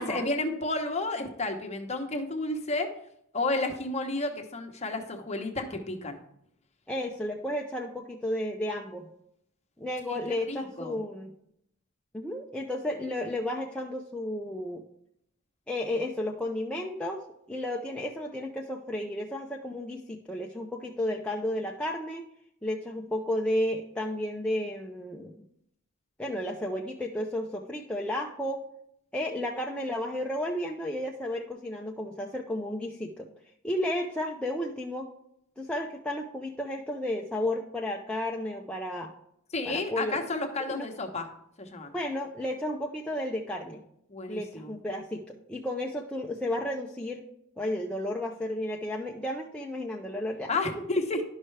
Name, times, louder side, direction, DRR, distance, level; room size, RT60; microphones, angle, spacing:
voice 1, 0.0-2.9 3.3-6.2 10.1-10.2 10.5-11.0 39.5-41.3 41.6-41.9 44.1-44.7 50.5-51.2, left 2 dB, 30° left, 4 dB, 0.9 m, -31 dB
voice 2, 6.9-9.1 9.8-11.3 12.1-14.8 15.7-17.2 17.5-22.3 22.6-25.3 26.2-28.6 29.1-33.3 33.6-35.1 35.6-39.1 39.6-40.2 40.7-40.9 41.9-43.8 44.3-47.2 47.6-50.5, left 1 dB, 5° left, -2 dB, 0.5 m, -33 dB
11.0 x 5.5 x 3.3 m, 0.73 s
head